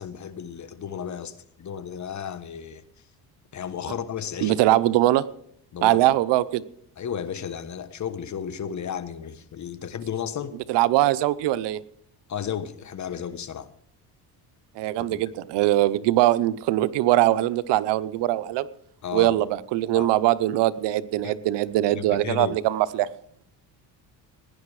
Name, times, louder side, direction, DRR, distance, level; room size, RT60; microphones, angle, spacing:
voice 1, 0.0-2.8 3.5-4.6 5.7-6.0 7.0-10.6 12.3-13.7 15.0-15.2 19.0-19.3 19.9-20.1 21.2-21.3 21.9-22.5, left 8 dB, 45° left, 13 dB, 1.3 m, -33 dB
voice 2, 4.4-5.2 5.8-6.6 10.7-11.8 14.8-18.7 19.1-23.1, right 15 dB, 85° right, 15 dB, 0.9 m, -22 dB
17.5 x 10.5 x 4.8 m, 0.66 s
cardioid pair, 100°, 41 cm